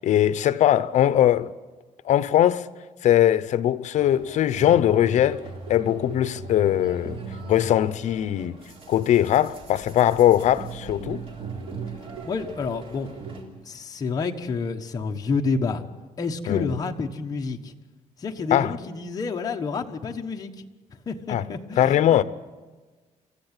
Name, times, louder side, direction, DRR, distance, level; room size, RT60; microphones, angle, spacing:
voice 1, 0.0-1.5 2.0-2.7 3.0-5.4 5.7-7.2 7.5-8.6 8.9-11.2 16.5-16.7 18.5-18.7 21.3-21.4 21.8-22.2, left 11 dB, 65° left, 0.8 m, -20 dB
sound 1, 3.9-13.4, right 4 dB, 45° right, 3.4 m, -39 dB
voice 2, 12.2-13.1 13.6-15.8 16.2-17.7 18.2-20.5 21.1-22.2, left 4 dB, 30° left, 1.2 m, -29 dB
28.0 x 14.5 x 8.9 m
cardioid pair, 180°, 13 cm